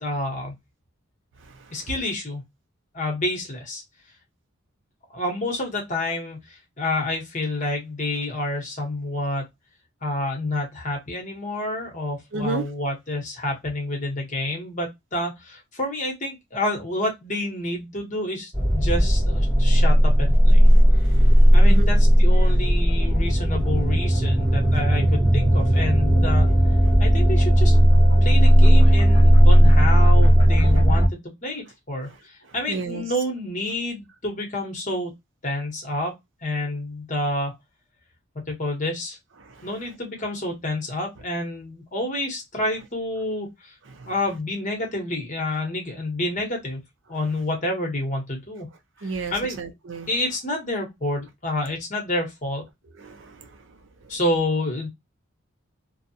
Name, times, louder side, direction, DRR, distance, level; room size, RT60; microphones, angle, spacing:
voice 1, 0.0-0.5 1.7-2.4 2.9-3.8 5.1-9.4 10.0-20.6 21.5-26.5 27.0-27.8 28.2-35.1 35.4-36.2 36.4-37.5 38.3-39.2 39.6-43.7 44.1-46.8 47.1-48.7 49.0-49.6 50.1-52.6 54.1-54.9, left 1 dB, 35° left, 1.0 m, -29 dB
voice 2, 1.5-1.9 12.3-12.6 21.0-21.3 21.6-21.9 32.1-32.2 32.5-33.0 39.4-39.7 43.9-44.1 49.0-50.1 52.9-54.1, right 3 dB, 60° right, 0.6 m, -33 dB
sound 1, 18.5-31.1, equal, 20° right, 1.1 m, -16 dB
2.6 x 2.3 x 2.7 m
head